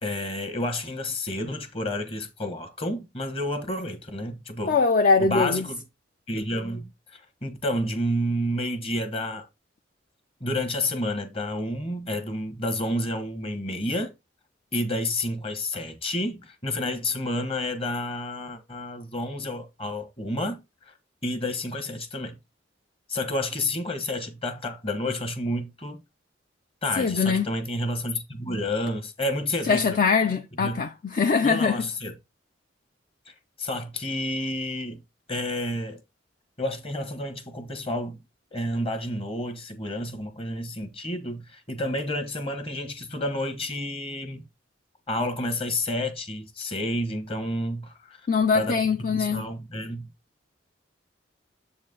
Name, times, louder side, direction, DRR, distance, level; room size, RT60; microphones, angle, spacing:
voice 1, 0.0-4.8 5.2-5.8 6.3-9.5 10.4-14.1 14.7-20.9 21.2-22.4 23.1-26.0 26.8-30.0 30.6-30.8 31.4-32.1 33.3-35.0 35.3-36.0 36.6-38.2 38.5-44.4 45.1-48.2 48.5-50.1, left 1 dB, 30° left, 1.2 m, -30 dB
voice 2, 4.7-5.6 27.0-27.5 29.7-31.8 48.3-49.4, left 5 dB, 45° left, 0.5 m, -22 dB
7.4 x 4.3 x 3.8 m
head